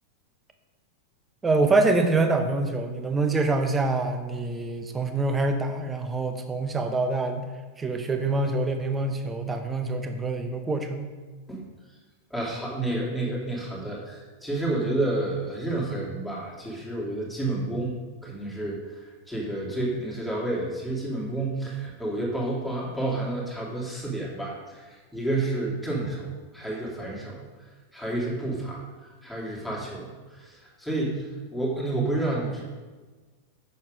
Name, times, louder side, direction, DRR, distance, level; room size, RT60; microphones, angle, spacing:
voice 1, 1.4-7.5 7.8-11.1, right 3 dB, 15° right, 6 dB, 1.0 m, -25 dB
voice 2, 12.3-19.0 19.3-27.5 27.9-32.6, right 2 dB, ahead, -5 dB, 2.8 m, -30 dB
8.3 x 6.8 x 5.1 m, 1.3 s
figure-of-eight pair, 90°, 0 cm